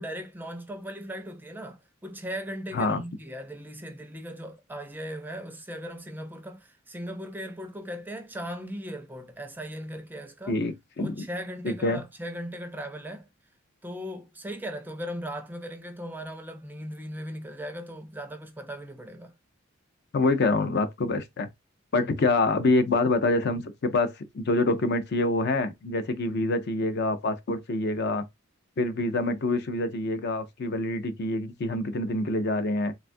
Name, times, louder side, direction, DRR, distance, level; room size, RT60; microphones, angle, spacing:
voice 1, 0.0-10.6 11.0-13.3 13.8-19.3 21.9-22.1, equal, 10° right, 0.4 m, -38 dB
voice 2, 2.7-3.0 10.5-11.3 11.6-12.0 20.1-21.5 21.9-28.3 28.8-32.9, left 2 dB, 55° left, 0.5 m, -26 dB
3.3 x 2.2 x 2.5 m
head